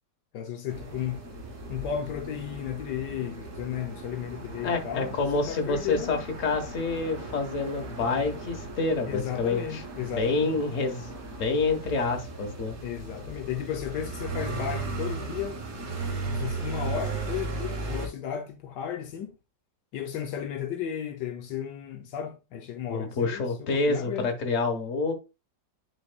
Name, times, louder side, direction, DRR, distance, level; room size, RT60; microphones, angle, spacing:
voice 1, 0.3-1.2 1.7-5.2 5.4-6.2 9.1-10.5 12.8-15.6 16.2-19.4 19.9-24.3, left 9 dB, 80° left, 1.4 m, -34 dB
sound 1, 0.7-18.1, right 3 dB, 60° right, 2.1 m, -37 dB
voice 2, 4.6-11.1 11.4-12.8 22.9-25.1, left 3 dB, 50° left, 1.5 m, -28 dB
10.0 x 4.4 x 2.2 m
omnidirectional pair, 1.9 m